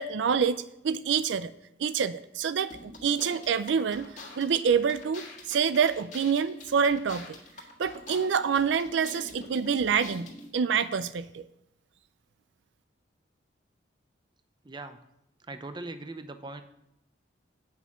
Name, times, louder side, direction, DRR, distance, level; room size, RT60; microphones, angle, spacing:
voice 1, 0.0-1.5 1.8-4.0 4.4-7.4 7.8-11.4, right 6 dB, 70° right, 14 dB, 0.4 m, -27 dB
sound 1, 2.7-10.5, left 2 dB, 40° left, 1.7 m, -46 dB
voice 2, 14.6-15.0 15.5-16.6, right 2 dB, 25° right, 9 dB, 0.5 m, -40 dB
8.5 x 5.6 x 7.2 m, 0.82 s
head